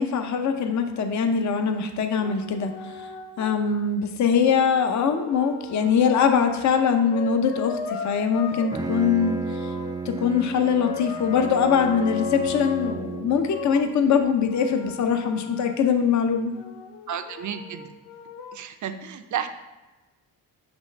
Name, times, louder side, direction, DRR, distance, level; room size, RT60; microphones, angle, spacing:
voice 1, 0.0-3.1 3.4-9.7 10.0-16.5, left 6 dB, 45° left, 6 dB, 0.7 m, -22 dB
sound 1, 1.3-1.4 2.2-3.6 4.5-6.2 6.7-8.8 9.2-10.0 10.7-13.0 13.4-15.8 16.6-18.6, left 8 dB, 90° left, 0.7 m, -36 dB
Bowed string instrument, 8.5-13.6, right 4 dB, 10° right, 0.3 m, -33 dB
voice 2, 17.1-17.9 18.5-19.5, right 9 dB, 45° right, 9 dB, 0.6 m, -32 dB
6.2 x 3.1 x 5.3 m, 1.1 s
cardioid pair, 75°, 40 cm